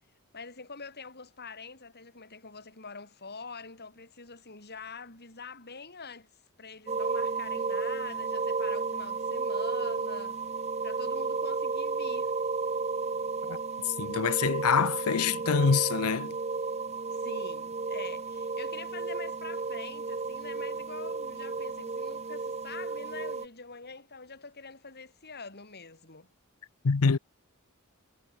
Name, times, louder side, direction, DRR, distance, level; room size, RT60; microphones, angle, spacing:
voice 1, 0.3-6.3 6.6-10.4 10.8-12.3 17.1-26.3, left 4 dB, 50° left, 7.9 m, -45 dB
sound 1, 6.9-23.5, right 4 dB, 30° right, 0.8 m, -33 dB
voice 2, 13.8-16.4 26.8-27.2, left 5 dB, 85° left, 0.7 m, -25 dB
head